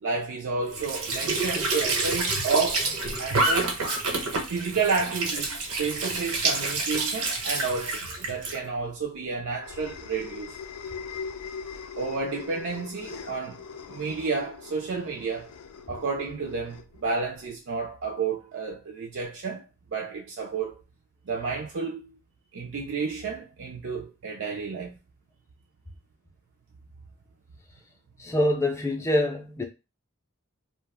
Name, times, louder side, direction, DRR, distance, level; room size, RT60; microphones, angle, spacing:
voice 1, 0.0-2.9 3.2-3.8 4.5-10.6 12.0-13.6 13.9-15.5 15.9-19.6 19.9-20.8 21.3-22.1 22.5-25.0, right 4 dB, 55° right, 0.4 m, -31 dB
Squeak / Sink (filling or washing) / Trickle dribble, 0.7-8.6, right 3 dB, 90° right, 1.0 m, -28 dB
sound 1, 8.7-17.6, left 6 dB, 85° left, 0.4 m, -41 dB
voice 2, 28.2-29.6, left 1 dB, 10° left, 0.4 m, -25 dB
2.4 x 2.1 x 3.4 m
head